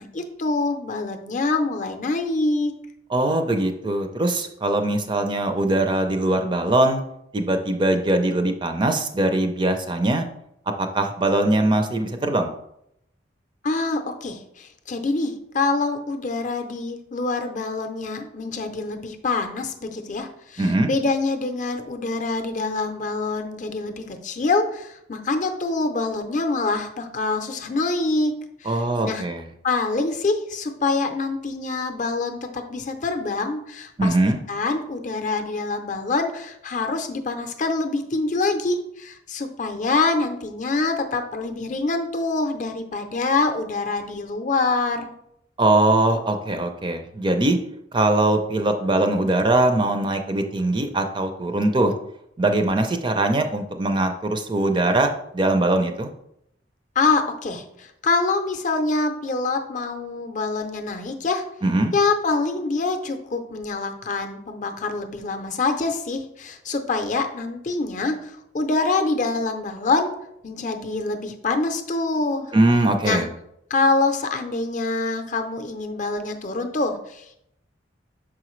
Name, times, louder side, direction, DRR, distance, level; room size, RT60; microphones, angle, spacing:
voice 1, 0.0-2.7 13.6-28.3 28.6-29.2 29.6-34.1 34.5-45.1 57.0-61.4 61.9-70.1 70.4-72.5 73.0-73.2 73.7-77.4, left 3 dB, 45° left, 6 dB, 0.6 m, -25 dB
voice 2, 3.1-7.0 7.3-10.2 10.8-12.5 20.6-20.9 28.7-29.4 34.0-34.4 45.6-47.6 47.9-51.9 52.4-56.1 61.6-61.9 72.5-73.3, right 2 dB, 25° right, 6 dB, 0.4 m, -21 dB
6.3 x 4.8 x 3.1 m, 0.77 s
head